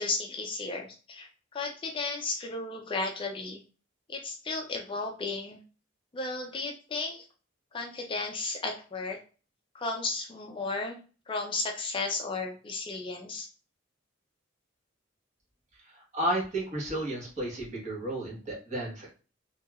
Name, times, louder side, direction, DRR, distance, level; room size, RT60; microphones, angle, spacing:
voice 1, 0.0-3.6 4.1-5.6 6.1-7.2 7.7-9.2 9.7-11.0 11.3-13.5, left 3 dB, 25° left, 2 dB, 0.4 m, -34 dB
voice 2, 15.9-19.1, right 1 dB, 35° right, -3 dB, 1.2 m, -32 dB
3.0 x 2.7 x 2.3 m, 0.36 s
head